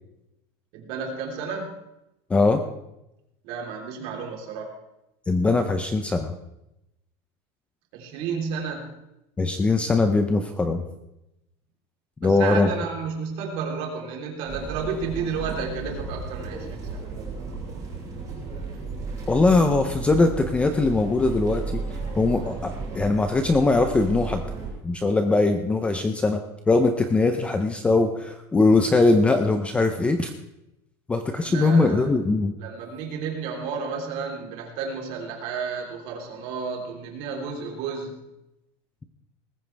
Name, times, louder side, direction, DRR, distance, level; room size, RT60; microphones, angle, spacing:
voice 1, 0.7-1.8 3.4-4.7 7.9-8.9 12.2-17.1 31.5-32.1 32.6-38.2, right 5 dB, 45° right, 1 dB, 3.5 m, -32 dB
voice 2, 2.3-2.6 5.3-6.3 9.4-10.8 12.2-12.7 19.3-21.8 22.2-24.4 24.8-26.4 26.7-30.3 31.1-32.6, left 3 dB, 10° left, 7 dB, 0.6 m, -21 dB
sound 1, 14.4-24.7, right 4 dB, 25° right, 6.8 m, -34 dB
19.0 x 14.5 x 3.4 m, 0.88 s
cardioid pair, 180°, 13 cm